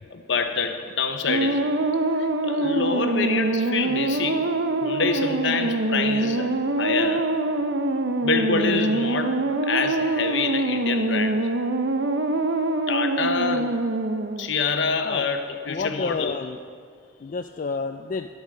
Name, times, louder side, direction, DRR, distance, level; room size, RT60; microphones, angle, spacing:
voice 1, 0.1-1.6 2.2-4.5 4.8-7.3 8.2-11.4 12.9-13.8 14.4-16.3, left 4 dB, 65° left, 7 dB, 0.9 m, -26 dB
sound 1, 1.3-14.6, right 2 dB, 60° right, 0.6 m, -24 dB
voice 2, 15.7-16.6 17.2-18.3, left 4 dB, 40° left, 6 dB, 0.3 m, -30 dB
11.0 x 8.4 x 6.5 m, 2.1 s
head